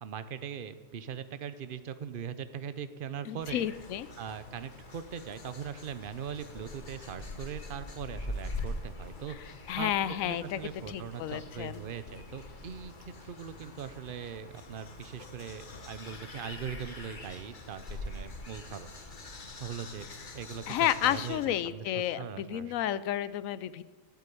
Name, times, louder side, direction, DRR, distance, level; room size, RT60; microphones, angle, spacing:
voice 1, 0.0-3.6 4.2-9.4 9.8-9.9 10.2-18.9 19.6-20.1 20.3-22.7, right 7 dB, 50° right, 12 dB, 0.8 m, -40 dB
voice 2, 3.3-4.1 9.7-10.6 10.9-11.8 20.7-23.8, left 11 dB, 80° left, 16 dB, 1.0 m, -31 dB
sound 1, 3.4-21.5, left 2 dB, 40° left, 1.3 m, -44 dB
12.5 x 8.4 x 8.5 m, 1.4 s
omnidirectional pair, 1.4 m